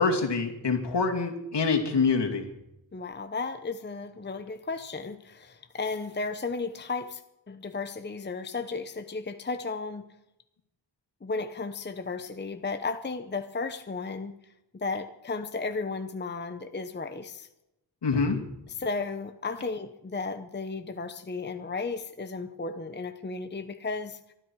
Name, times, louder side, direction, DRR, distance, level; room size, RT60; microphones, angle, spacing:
voice 1, 0.0-2.4 18.0-18.4, left 4 dB, 65° left, 3 dB, 2.8 m, -25 dB
voice 2, 2.9-7.2 7.5-10.1 11.2-14.3 14.7-17.5 18.7-24.3, left 4 dB, 25° left, 8 dB, 0.8 m, -34 dB
23.0 x 13.0 x 4.7 m, 0.88 s
wide cardioid pair, 110°, 45 cm